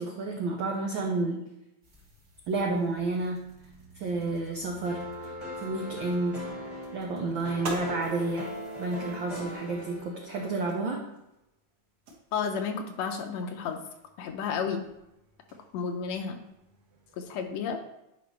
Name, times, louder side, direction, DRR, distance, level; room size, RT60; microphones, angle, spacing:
voice 1, 0.0-1.4 2.5-3.5 3.9-5.3 5.6-6.4 6.9-8.5 8.8-11.0, right 3 dB, 80° right, 0 dB, 1.1 m, -30 dB
sound 1, 1.8-9.8, equal, 35° right, 1.2 m, -56 dB
sound 2, 4.8-10.7, equal, 15° left, 1.0 m, -40 dB
sound 3, 7.5-17.3, right 2 dB, 60° right, 2.2 m, -47 dB
voice 2, 12.3-13.8 14.2-14.8 15.7-16.4 17.2-17.8, left 6 dB, 75° left, 5 dB, 1.8 m, -32 dB
10.5 x 5.1 x 3.3 m, 0.88 s
omnidirectional pair, 3.3 m